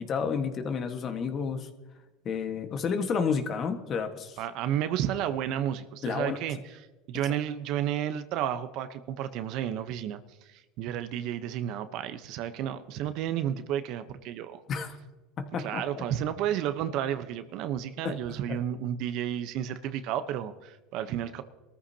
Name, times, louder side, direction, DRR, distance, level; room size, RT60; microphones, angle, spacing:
voice 1, 0.0-1.7 2.2-4.4 6.0-6.4 14.7-15.0 15.4-16.0 18.0-18.4, left 6 dB, 35° left, 7 dB, 1.5 m, -31 dB
voice 2, 4.4-6.8 7.1-14.6 15.6-21.4, right 10 dB, 55° right, 11 dB, 0.9 m, -32 dB
22.5 x 14.0 x 2.9 m, 1.2 s
supercardioid pair, 120°, 0 cm